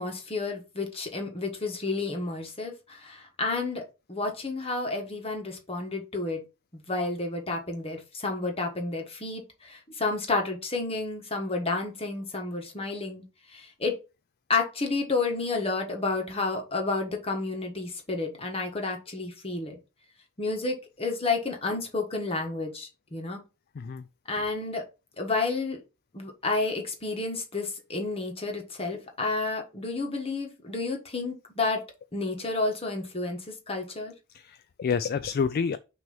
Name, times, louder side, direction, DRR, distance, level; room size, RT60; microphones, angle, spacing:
voice 1, 0.0-3.8 4.1-6.4 6.7-13.2 13.5-14.0 14.5-19.8 20.4-23.4 24.3-24.8 25.2-25.8 26.1-31.8 32.1-34.1, left 3 dB, 25° left, 1.4 m, -30 dB
voice 2, 34.3-35.8, left 6 dB, 45° left, 0.3 m, -28 dB
6.1 x 3.0 x 5.3 m
head